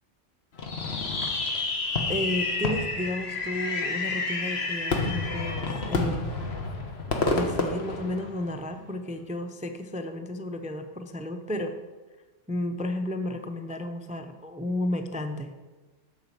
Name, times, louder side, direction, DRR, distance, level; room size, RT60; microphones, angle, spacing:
Fireworks, 0.6-8.7, left 3 dB, 60° left, 1.4 m, -29 dB
voice 1, 2.1-6.3 7.1-11.8 12.5-15.5, left 1 dB, 10° right, 7 dB, 0.3 m, -32 dB
8.3 x 6.5 x 8.2 m, 1.3 s
omnidirectional pair, 1.2 m